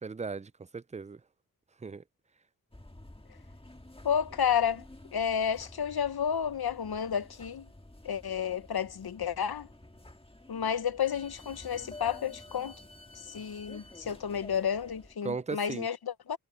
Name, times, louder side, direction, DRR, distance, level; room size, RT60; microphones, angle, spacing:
voice 1, 0.0-1.2 1.8-2.0 15.2-15.9, right 4 dB, 20° right, 0.4 m, -37 dB
sound 1, 2.7-15.2, left 1 dB, 15° left, 1.6 m, -51 dB
voice 2, 4.0-4.8 5.1-7.7 8.0-9.7 10.5-12.8 13.3-16.4, left 8 dB, 85° left, 0.8 m, -31 dB
wide cardioid pair, 60°, 36 cm